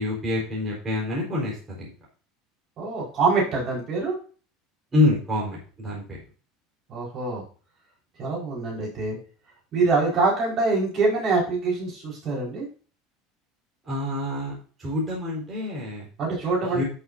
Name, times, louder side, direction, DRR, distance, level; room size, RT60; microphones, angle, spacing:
voice 1, 0.0-1.9 4.9-6.2 13.9-14.5 14.8-16.1 16.6-16.8, left 2 dB, 15° right, -5 dB, 4.5 m, -26 dB
voice 2, 2.8-4.1 6.9-7.4 8.2-9.2 9.7-12.7 16.2-16.8, right 3 dB, 35° right, -3 dB, 4.9 m, -24 dB
13.5 x 6.8 x 2.7 m, 0.38 s
cardioid pair, 165°, 0 cm